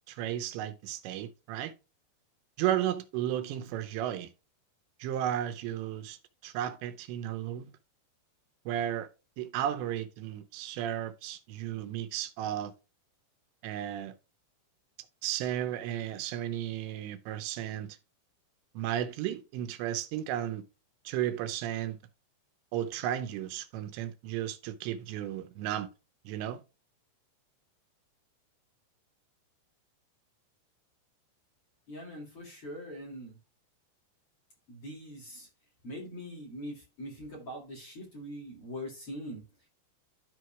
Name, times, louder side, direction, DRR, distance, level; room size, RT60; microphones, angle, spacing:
voice 1, 0.1-1.7 2.6-4.3 5.0-6.2 6.4-7.7 8.7-9.1 9.4-12.7 13.6-14.1 15.2-18.0 18.7-20.6 21.1-22.0 22.7-25.9 26.3-26.6, right 11 dB, 85° right, 3.0 m, -34 dB
voice 2, 31.9-33.4 34.7-35.5 35.8-39.4, equal, 40° left, 2.5 m, -42 dB
13.5 x 4.7 x 2.3 m
omnidirectional pair, 5.0 m